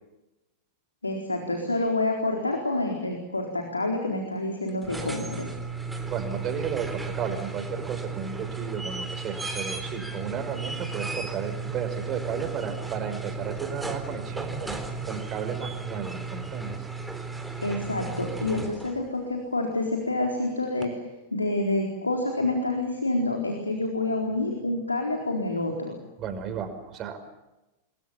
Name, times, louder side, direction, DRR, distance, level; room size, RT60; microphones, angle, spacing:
voice 1, 1.0-5.5 17.6-21.0 21.3-26.0, left 2 dB, 80° left, 2 dB, 4.2 m, -28 dB
sound 1, 4.7-19.1 20.8-20.9, right 4 dB, 5° right, 3.8 m, -35 dB
voice 2, 6.1-14.8 15.0-16.8 26.2-27.2, right 7 dB, 35° right, 7 dB, 5.7 m, -33 dB
29.0 x 22.5 x 7.3 m, 0.98 s
figure-of-eight pair, 90°, 0 cm